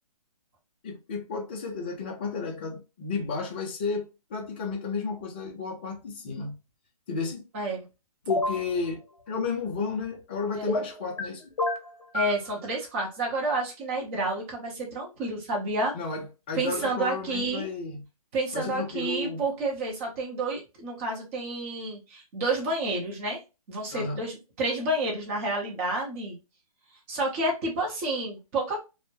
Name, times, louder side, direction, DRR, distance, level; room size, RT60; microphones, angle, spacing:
voice 1, 0.8-6.6 7.1-7.4 8.3-9.0 9.3-11.5 15.9-18.0 18.5-19.4 23.9-24.2, left 4 dB, 15° left, 0.3 m, -33 dB
voice 2, 7.5-7.8 10.5-10.7 12.1-15.9 16.5-17.7 18.3-23.4 23.7-26.4 27.1-28.8, right 2 dB, 20° right, 0.7 m, -30 dB
sound 1, 8.3-8.6 10.7-11.3 11.6-12.4, left 2 dB, 60° left, 0.7 m, -28 dB
2.1 x 2.0 x 2.9 m
hypercardioid pair, 155°, 20 cm